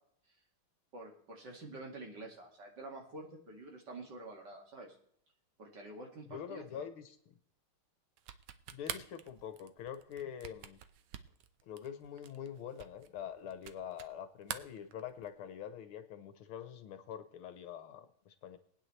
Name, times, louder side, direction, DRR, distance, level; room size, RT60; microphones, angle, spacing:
voice 1, 0.9-5.0 5.6-6.9, right 2 dB, 50° right, 1 dB, 2.8 m, -48 dB
voice 2, 6.3-7.2 8.7-10.8 11.6-18.6, left 9 dB, 75° left, 9 dB, 1.8 m, -45 dB
sound 1, 8.2-14.2 14.4-15.4, right 9 dB, 65° right, 1.1 m, -46 dB
21.5 x 9.4 x 3.3 m, 0.66 s
omnidirectional pair, 2.4 m